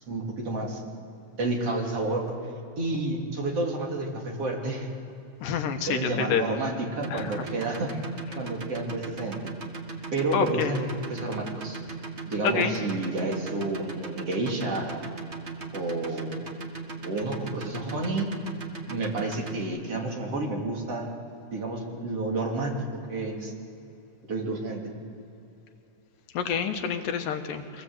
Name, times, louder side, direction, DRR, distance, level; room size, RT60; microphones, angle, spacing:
voice 1, 0.1-0.8 1.3-2.4 2.8-4.9 5.8-7.9 8.4-9.5 10.1-11.8 12.2-15.0 15.7-16.4 17.0-18.3 18.9-21.1 21.5-23.5 24.3-24.8, right 2 dB, 45° right, 0 dB, 3.8 m, -30 dB
voice 2, 5.4-6.6 7.1-7.5 10.3-10.8 12.4-12.8 26.3-27.8, left 6 dB, 90° left, 6 dB, 3.0 m, -28 dB
sound 1, 7.0-19.6, right 5 dB, 30° right, 1.4 m, -37 dB
24.0 x 19.5 x 8.1 m, 2.7 s
omnidirectional pair, 3.8 m